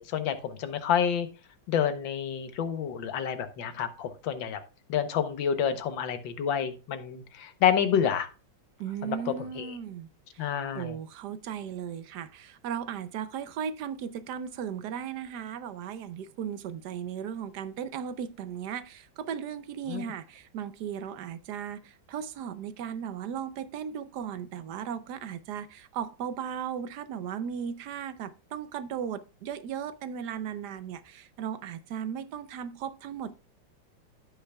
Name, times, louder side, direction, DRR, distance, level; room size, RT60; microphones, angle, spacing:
voice 1, 0.1-1.3 1.7-4.6 4.9-8.3 9.0-9.8 10.4-11.0 19.9-20.0, left 8 dB, 75° left, 1.7 m, -28 dB
voice 2, 8.8-33.3, right 8 dB, 65° right, 1.1 m, -36 dB
14.5 x 5.7 x 2.3 m
omnidirectional pair, 2.1 m